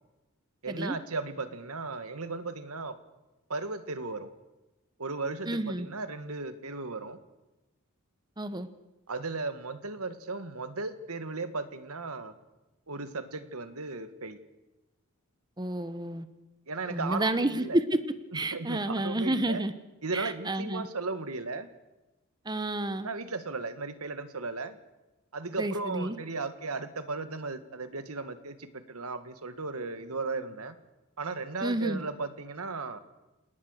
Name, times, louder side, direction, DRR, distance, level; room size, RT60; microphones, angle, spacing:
voice 1, 0.6-3.0 3.5-4.3 5.0-7.2 9.1-12.3 12.9-14.4 16.7-17.8 18.3-19.6 20.0-21.7 23.0-24.8 25.3-30.8 31.2-33.0, right 3 dB, 85° right, 10 dB, 1.8 m, -36 dB
voice 2, 5.5-5.9 8.4-8.7 15.6-16.3 16.9-18.0 18.3-19.7 20.1-20.9 22.5-23.1 25.6-26.2 31.6-32.0, right 1 dB, 20° right, 11 dB, 1.1 m, -30 dB
28.0 x 19.0 x 6.6 m, 1.0 s
head